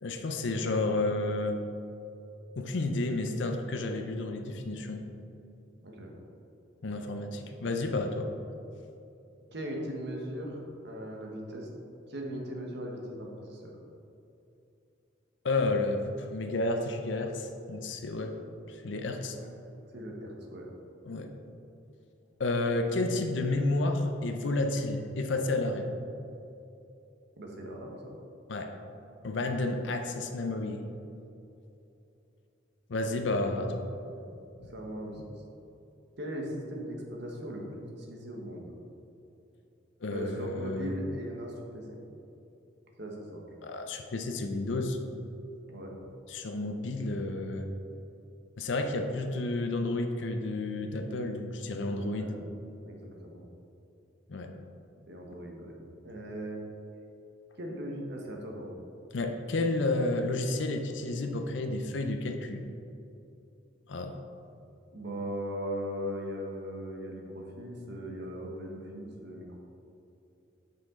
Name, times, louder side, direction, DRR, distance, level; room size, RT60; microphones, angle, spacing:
voice 1, 0.0-1.6 2.6-5.0 6.8-8.3 15.4-18.3 18.7-19.4 21.0-21.3 22.4-25.9 28.5-28.7 29.2-30.8 32.9-33.8 35.2-35.3 40.0-40.9 43.6-45.0 46.3-47.7 48.6-52.4 54.3-54.5 59.1-62.6 63.9-64.2, left 2 dB, 65° left, 5 dB, 0.6 m, -31 dB
voice 2, 9.5-10.6 10.8-11.7 12.1-13.8 19.3-19.5 19.9-20.6 27.4-28.1 34.1-34.3 34.7-35.2 36.2-38.7 40.1-42.0 43.0-43.4 45.7-45.9 52.0-52.4 52.8-53.4 55.1-55.7 56.0-56.6 57.6-58.8 64.9-69.5, equal, 60° right, 0 dB, 1.2 m, -39 dB
7.5 x 5.8 x 3.7 m, 2.8 s
head